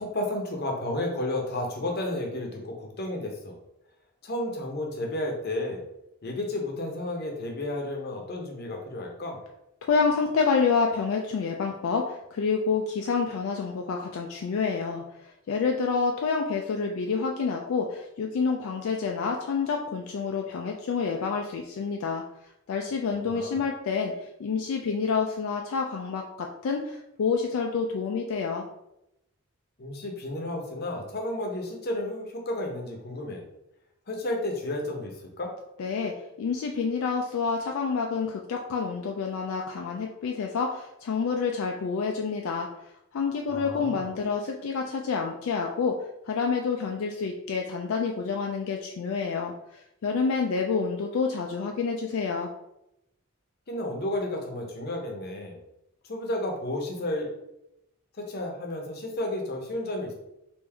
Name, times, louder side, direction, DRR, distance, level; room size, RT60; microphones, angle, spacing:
voice 1, 0.0-3.5 4.2-5.8 6.2-9.4 23.2-23.6 29.8-33.4 34.1-35.5 43.5-44.1 53.7-55.6 56.0-57.3 58.2-60.1, left 1 dB, 45° left, 1 dB, 0.7 m, -32 dB
voice 2, 9.8-15.0 15.5-22.2 22.7-28.6 35.8-42.7 43.1-46.0 46.2-52.5, left 5 dB, 70° left, 1 dB, 0.3 m, -28 dB
3.5 x 2.6 x 3.3 m, 0.85 s
head